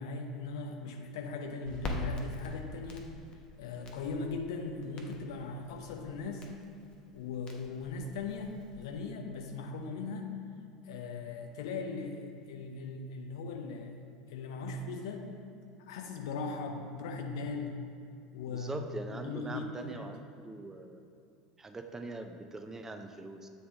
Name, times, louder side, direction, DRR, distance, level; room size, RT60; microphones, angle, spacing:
voice 1, 0.0-3.1 3.6-6.5 7.1-10.4 10.8-15.3 15.8-17.8 18.3-18.8 19.1-20.1, left 4 dB, 65° left, 3 dB, 0.7 m, -39 dB
Crackle, 1.7-9.0, left 2 dB, 35° left, 0.9 m, -44 dB
voice 2, 18.5-21.0 21.6-23.5, right 2 dB, 15° right, 5 dB, 0.5 m, -42 dB
8.9 x 3.5 x 3.6 m, 2.5 s
figure-of-eight pair, 75°, 3 cm